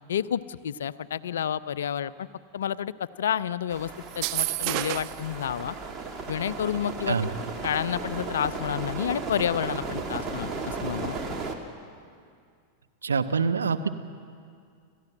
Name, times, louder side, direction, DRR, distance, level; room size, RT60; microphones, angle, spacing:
voice 1, 0.1-2.3 2.5-2.9 3.2-3.9 4.2-5.7 6.3-7.3 7.6-11.2, left 9 dB, 65° left, 17 dB, 0.5 m, -29 dB
sound 1, 3.7-11.6, right 4 dB, 25° right, 2.5 m, -35 dB
sound 2, 4.1-5.3, right 19 dB, 45° right, 0.5 m, -29 dB
voice 2, 13.0-13.9, right 5 dB, 70° right, 8 dB, 1.0 m, -25 dB
27.5 x 15.0 x 7.7 m, 2.2 s
figure-of-eight pair, 90°, 0 cm